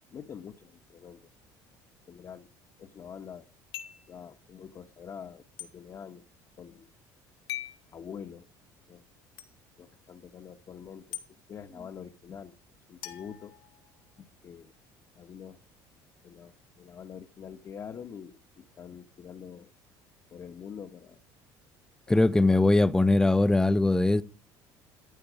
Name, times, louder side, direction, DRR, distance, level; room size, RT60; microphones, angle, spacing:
voice 1, 0.1-1.3 2.1-2.5 2.8-3.5 4.1-6.2 6.6-6.9 7.9-8.5 8.9-9.0 9.8-11.2 11.5-12.6 12.9-13.5 14.2-14.7 15.2-15.6 16.2-19.7 20.3-21.2 22.1-22.2 22.5-22.7, left 7 dB, 40° left, 1.4 m, -45 dB
sound 1, 3.7-4.1 5.6-5.7 7.5-7.8 9.4-9.5 11.1-11.3 13.0-14.1, left 14 dB, 70° left, 2.5 m, -40 dB
voice 2, 22.1-24.2, left 2 dB, 5° left, 0.9 m, -21 dB
14.5 x 12.0 x 5.0 m
cardioid pair, 105°, 9 cm